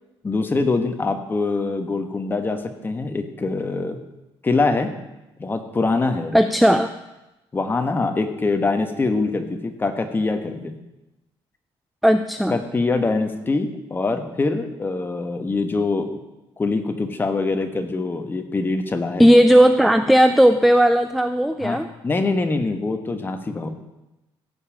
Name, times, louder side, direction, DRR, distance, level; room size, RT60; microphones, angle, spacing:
voice 1, 0.2-4.0 4.4-4.9 5.4-6.4 7.5-10.7 12.5-16.1 16.6-19.3 21.6-21.8 22.0-23.7, left 3 dB, 20° left, 7 dB, 1.3 m, -24 dB
voice 2, 6.3-6.9 12.0-12.6 19.2-21.9, equal, ahead, 9 dB, 0.5 m, -15 dB
15.5 x 5.5 x 8.6 m, 0.99 s
cardioid pair, 135°, 10 cm